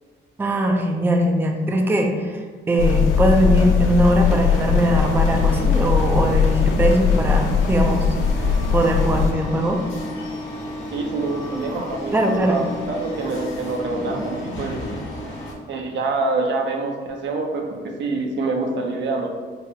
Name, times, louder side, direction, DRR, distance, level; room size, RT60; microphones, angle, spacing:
voice 1, 0.4-2.4 2.7-8.1 8.3-9.8 12.1-12.6, right 1 dB, 10° right, 2 dB, 0.4 m, -20 dB
sound 1, 2.8-9.3, left 6 dB, 90° left, 0.5 m, -20 dB
sound 2, 4.2-15.5, left 1 dB, 70° left, 1.1 m, -33 dB
voice 2, 10.9-14.8 15.7-19.3, right 3 dB, 65° right, 2 dB, 0.6 m, -26 dB
4.2 x 2.1 x 3.5 m, 1.5 s
cardioid pair, 90°, 20 cm